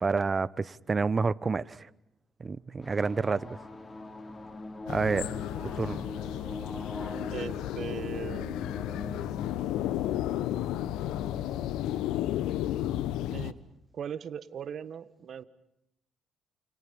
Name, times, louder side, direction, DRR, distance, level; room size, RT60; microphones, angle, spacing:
voice 1, 0.0-1.9 2.4-3.5 4.9-5.3 5.8-6.0, right 4 dB, 35° right, 21 dB, 1.0 m, -28 dB
sound 1, 2.8-13.0, left 2 dB, 25° left, 3.4 m, -42 dB
sound 2, 4.9-13.5, left 13 dB, 75° left, 1.1 m, -33 dB
voice 2, 7.3-8.7 13.3-13.6 13.9-15.4, right 8 dB, 55° right, 15 dB, 1.6 m, -39 dB
30.0 x 29.5 x 5.4 m, 0.82 s
hypercardioid pair, 55°, 0 cm